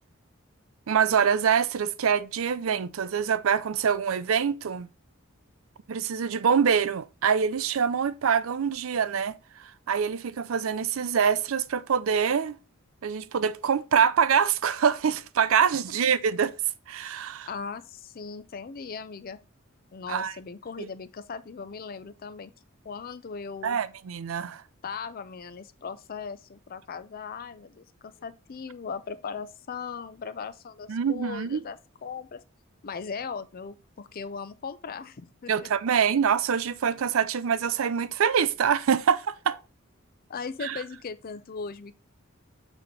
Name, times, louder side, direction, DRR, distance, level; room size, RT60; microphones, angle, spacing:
voice 1, 0.9-4.9 5.9-12.6 13.0-16.5 16.9-17.5 20.1-20.3 20.8-20.9 23.6-24.6 30.9-31.6 35.5-39.6 40.6-40.8, right 7 dB, 75° right, 0.5 m, -25 dB
voice 2, 17.5-19.4 19.9-22.5 22.8-23.8 24.8-32.4 32.8-35.7 40.3-41.9, left 5 dB, 45° left, 0.5 m, -38 dB
6.8 x 3.0 x 5.2 m
head